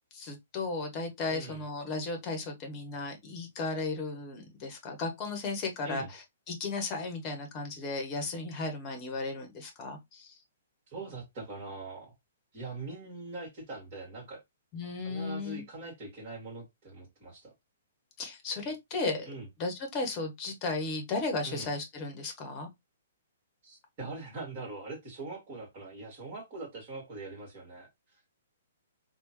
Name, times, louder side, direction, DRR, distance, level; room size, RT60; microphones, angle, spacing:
voice 1, 0.1-10.4 14.7-15.6 18.2-19.3 19.6-22.7, left 3 dB, 25° left, 1.1 m, -35 dB
voice 2, 1.3-1.6 5.8-6.1 10.9-12.1 12.5-14.4 15.0-17.5 19.3-19.5 21.4-21.7 23.6-27.9, right 3 dB, 30° right, 2.0 m, -42 dB
3.5 x 2.4 x 2.9 m
figure-of-eight pair, 120°, 0 cm